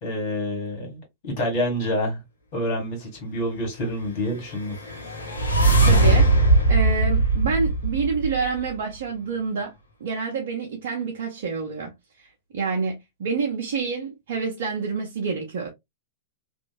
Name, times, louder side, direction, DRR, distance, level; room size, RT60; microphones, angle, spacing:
voice 1, 0.0-2.2 2.5-4.8, equal, 50° left, 1.9 m, -27 dB
sound 1, 4.5-8.7, right 2 dB, 80° left, 0.8 m, -20 dB
voice 2, 5.9-6.4 6.7-9.7 10.0-15.7, right 5 dB, 60° right, 0.7 m, -28 dB
3.0 x 2.6 x 2.4 m
figure-of-eight pair, 100°, 0 cm